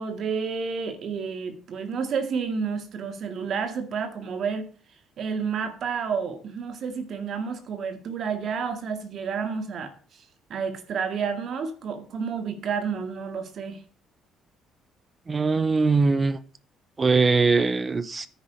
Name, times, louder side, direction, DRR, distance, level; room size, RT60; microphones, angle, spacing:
voice 1, 0.0-4.7 5.2-10.2 10.5-13.8, right 6 dB, 55° right, 2.0 m, -30 dB
voice 2, 15.3-16.4 17.0-18.3, right 4 dB, 25° right, 0.6 m, -21 dB
9.9 x 9.6 x 5.0 m
cardioid pair, 105°, 0 cm